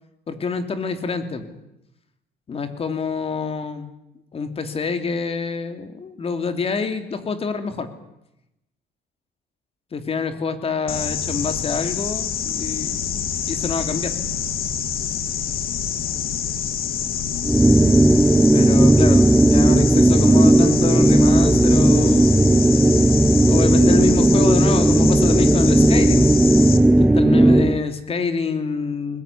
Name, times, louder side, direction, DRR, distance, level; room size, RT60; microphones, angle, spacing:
voice 1, 0.3-1.6 2.5-3.9 4.3-7.9 9.9-14.2 18.5-22.3 23.4-26.3 27.0-29.2, left 5 dB, 35° left, 8 dB, 3.0 m, -26 dB
sound 1, 10.9-26.8, left 8 dB, 60° left, 2.3 m, -27 dB
sound 2, 17.4-27.8, right 1 dB, 5° right, 0.8 m, -15 dB
21.0 x 21.0 x 9.8 m, 0.88 s
cardioid pair, 110°, 17 cm